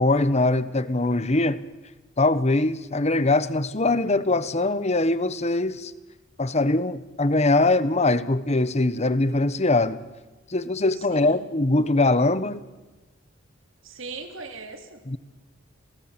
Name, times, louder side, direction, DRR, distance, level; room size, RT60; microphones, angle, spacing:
voice 1, 0.0-1.7 2.2-5.9 6.4-10.0 10.5-12.6 15.1-15.2, left 2 dB, 35° left, 1.1 m, -22 dB
voice 2, 10.9-11.4 13.8-15.0, right 4 dB, 75° right, 3.6 m, -39 dB
29.5 x 19.5 x 9.0 m
head